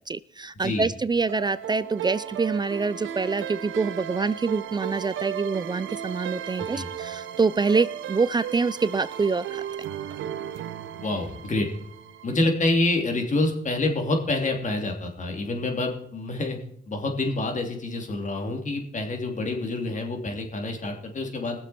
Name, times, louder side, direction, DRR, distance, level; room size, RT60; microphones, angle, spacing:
voice 1, 0.0-9.6, right 4 dB, 20° right, 18 dB, 0.4 m, -26 dB
voice 2, 0.6-0.9 6.7-6.9 11.0-11.7 12.2-16.6 16.9-21.6, left 2 dB, 40° left, 3 dB, 3.1 m, -27 dB
sound 1, 1.3-12.5, right 9 dB, 75° right, 0.9 m, -35 dB
21.5 x 7.3 x 4.4 m, 0.65 s
cardioid pair, 90°, 20 cm